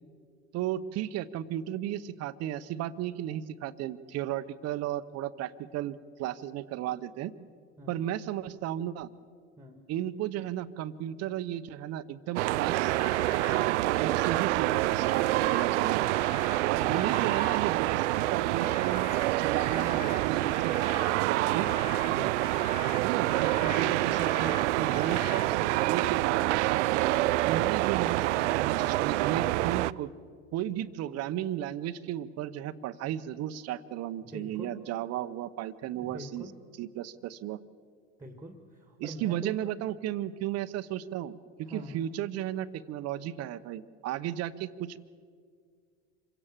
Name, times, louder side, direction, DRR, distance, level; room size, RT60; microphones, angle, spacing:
voice 1, 0.5-7.3 7.9-9.1 9.9-13.0 13.4-16.0 16.7-20.7 21.3-21.7 23.0-30.1 30.5-36.4 36.8-37.6 39.0-45.0, right 12 dB, 45° right, 13 dB, 0.9 m, -34 dB
sound 1, 12.4-29.9, right 17 dB, 85° right, 0.5 m, -27 dB
Frog / Rain, 12.7-26.2, left 8 dB, 25° left, 0.5 m, -46 dB
voice 2, 34.2-34.8 36.0-36.5 38.2-39.6 41.6-42.0, equal, 10° right, 6 dB, 1.8 m, -44 dB
26.5 x 17.0 x 7.4 m, 2.1 s
supercardioid pair, 110°, 35 cm